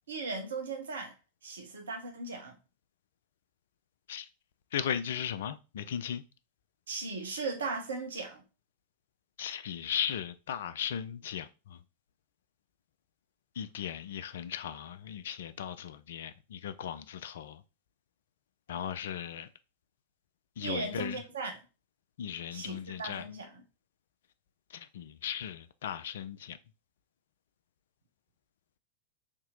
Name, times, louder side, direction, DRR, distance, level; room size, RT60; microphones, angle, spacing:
voice 1, 0.1-1.1 1.4-2.6 6.9-8.4 20.6-21.6 22.5-23.6, right 3 dB, 65° right, 0.8 m, -37 dB
voice 2, 4.7-6.2 9.4-11.5 13.6-17.6 18.7-19.5 20.6-21.2 22.2-23.3 24.7-26.6, left 9 dB, 60° left, 0.3 m, -37 dB
2.9 x 2.7 x 3.8 m
figure-of-eight pair, 90°, 0 cm